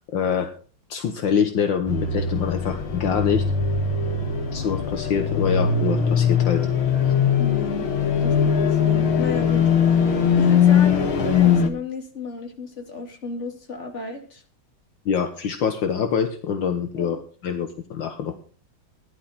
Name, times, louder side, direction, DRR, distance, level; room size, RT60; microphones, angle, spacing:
voice 1, 0.1-0.5 0.9-3.5 4.5-6.7 6.9-7.1 15.1-18.4, left 7 dB, 70° left, 6 dB, 1.9 m, -25 dB
sound 1, 1.9-11.7, left 7 dB, 85° left, 2.7 m, -20 dB
voice 2, 7.4-7.9 8.2-9.7 10.0-14.4 17.0-17.2, left 4 dB, 35° left, 2 dB, 2.8 m, -33 dB
16.0 x 11.0 x 4.3 m, 0.39 s
omnidirectional pair, 2.2 m